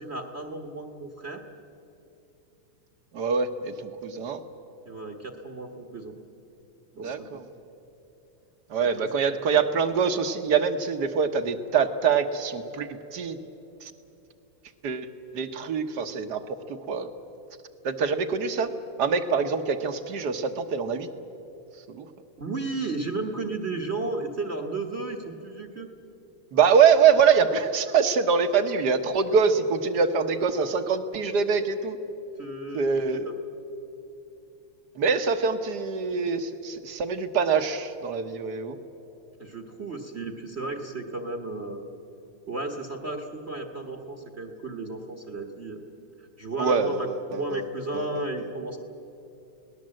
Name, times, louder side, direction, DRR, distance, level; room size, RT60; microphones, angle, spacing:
voice 1, 0.0-1.4 4.9-6.1 7.0-7.4 8.8-8.9 22.4-25.9 32.4-33.3 39.4-41.8 42.5-45.8 46.4-48.8, right 2 dB, 35° right, 4 dB, 1.4 m, -34 dB
voice 2, 3.1-4.4 7.0-7.4 8.7-13.4 13.8-13.9 14.8-15.1 15.3-17.1 17.8-18.7 19.0-21.1 21.9-22.1 26.5-32.0 32.7-33.3 34.9-38.8 46.6-47.6 47.9-48.2, right 6 dB, 55° right, 9 dB, 1.6 m, -24 dB
29.5 x 19.0 x 7.7 m, 3.0 s
omnidirectional pair, 2.3 m